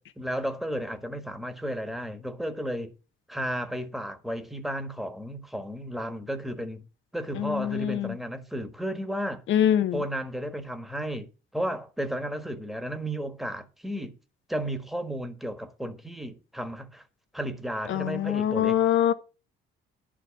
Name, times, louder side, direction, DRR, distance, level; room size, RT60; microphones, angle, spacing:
voice 1, 0.0-2.9 3.3-6.8 7.1-9.4 9.9-11.3 11.5-14.2 14.5-17.0 17.3-18.8, equal, ahead, 1.5 m, -33 dB
voice 2, 7.4-8.1 9.5-10.0 17.9-19.1, left 10 dB, 75° left, 1.0 m, -24 dB
11.0 x 5.0 x 7.0 m
cardioid pair, 90°, 20 cm